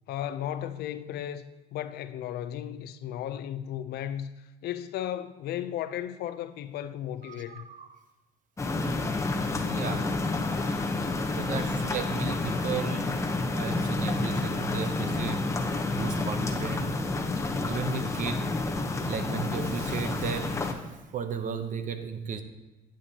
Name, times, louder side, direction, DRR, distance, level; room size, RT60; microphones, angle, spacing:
voice 1, 0.1-7.7, left 11 dB, 70° left, 0.5 m, -35 dB
voice 2, 7.2-8.0 9.6-10.2 10.4-10.6 11.2-13.1 13.5-15.5 15.9-17.0 17.6-18.5 19.0-22.4, right 7 dB, 50° right, 0.8 m, -35 dB
sound 1, 8.6-20.7, left 3 dB, 15° left, 0.8 m, -29 dB
10.0 x 8.5 x 2.8 m
cardioid pair, 110°, 17 cm